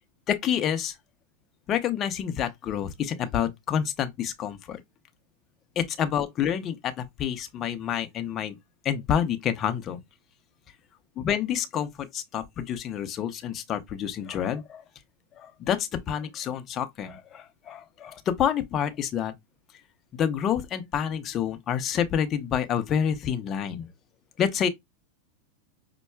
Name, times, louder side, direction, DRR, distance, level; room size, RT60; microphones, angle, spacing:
voice 1, 0.3-1.0 1.7-4.8 5.8-8.6 8.8-10.0 11.2-14.8 15.4-19.3 20.2-23.9 24.4-24.7, left 9 dB, 35° left, 0.6 m, -28 dB
5.4 x 2.2 x 2.2 m
hypercardioid pair, 120°, 0 cm